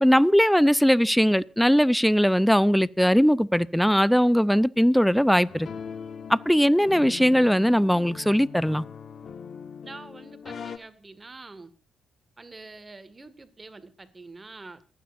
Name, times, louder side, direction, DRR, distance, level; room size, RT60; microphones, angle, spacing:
voice 1, 0.0-5.7 6.3-8.8, equal, ahead, 0.6 m, -20 dB
sound 1, 5.5-10.8, left 7 dB, 55° left, 1.1 m, -40 dB
voice 2, 9.8-11.7 12.4-14.8, right 3 dB, 30° right, 1.9 m, -45 dB
27.5 x 9.6 x 2.6 m
supercardioid pair, 60°, 0 cm